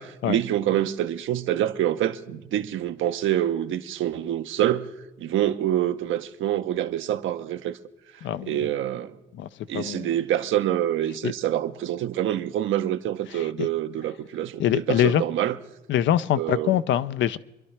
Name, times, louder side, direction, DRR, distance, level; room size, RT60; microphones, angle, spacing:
voice 1, 0.0-4.9 5.2-7.8 8.5-9.1 9.7-15.6 16.4-16.8, right 12 dB, 80° right, 0.8 m, -26 dB
voice 2, 8.2-8.7 9.3-9.5 9.7-10.1 11.2-11.3 13.3-13.7 14.6-15.2 15.9-17.4, left 11 dB, 70° left, 0.5 m, -24 dB
27.0 x 11.5 x 3.3 m
cardioid pair, 90°, 20 cm